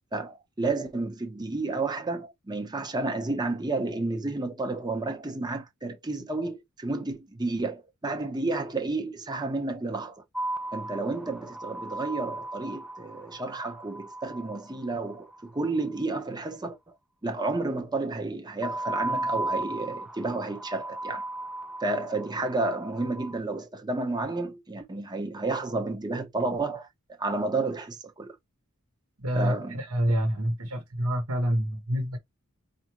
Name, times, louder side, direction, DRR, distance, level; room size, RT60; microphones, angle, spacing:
voice 1, 0.1-10.2 10.7-16.8 17.2-21.2 21.8-26.9 27.2-28.4 29.3-29.8, right 3 dB, 20° right, 0.7 m, -31 dB
sound 1, 10.4-15.7 18.6-23.4, right 1 dB, 5° right, 0.3 m, -35 dB
voice 2, 29.2-32.2, equal, 75° right, 1.2 m, -27 dB
4.7 x 2.6 x 3.0 m
head